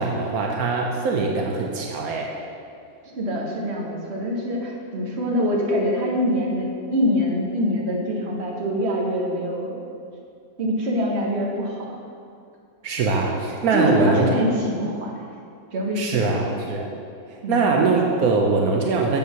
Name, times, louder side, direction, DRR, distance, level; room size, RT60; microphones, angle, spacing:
voice 1, 0.0-2.3 12.8-14.3 15.9-16.9 17.3-19.2, right 4 dB, 80° right, 0 dB, 1.2 m, -22 dB
voice 2, 3.1-9.8 10.6-11.9 13.7-15.1 15.7-16.5 17.4-17.7, equal, 50° right, -2 dB, 1.5 m, -24 dB
7.8 x 5.5 x 5.7 m, 2.4 s
omnidirectional pair, 1.5 m